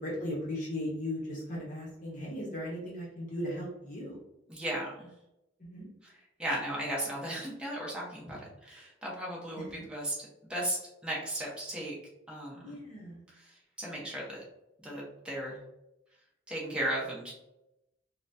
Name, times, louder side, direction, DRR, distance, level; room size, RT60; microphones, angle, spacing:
voice 1, 0.0-4.2 5.6-5.9 12.6-13.2, left 1 dB, 40° left, -4 dB, 0.8 m, -37 dB
voice 2, 4.5-5.1 6.0-11.9 12.3-12.8 13.3-14.4 14.8-15.6 16.5-17.3, right 1 dB, 5° right, -5 dB, 0.8 m, -36 dB
3.9 x 2.1 x 2.6 m, 0.89 s
head